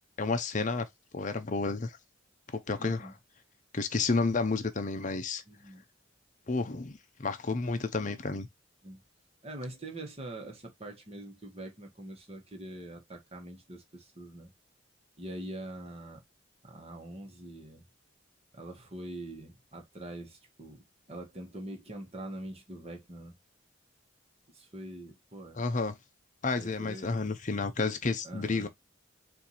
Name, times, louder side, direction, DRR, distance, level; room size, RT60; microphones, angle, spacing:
voice 1, 0.2-0.9 1.1-2.0 2.7-3.1 3.7-5.4 6.5-8.5 25.5-25.9 26.4-28.7, left 3 dB, 35° left, 0.6 m, -31 dB
voice 2, 2.8-3.1 5.5-5.8 8.8-9.0 9.4-14.5 15.2-16.2 16.6-17.8 18.5-20.8 21.1-23.3 24.5-25.6 26.6-27.1 28.2-28.7, right 1 dB, 30° right, 1.2 m, -44 dB
4.5 x 2.6 x 4.1 m
head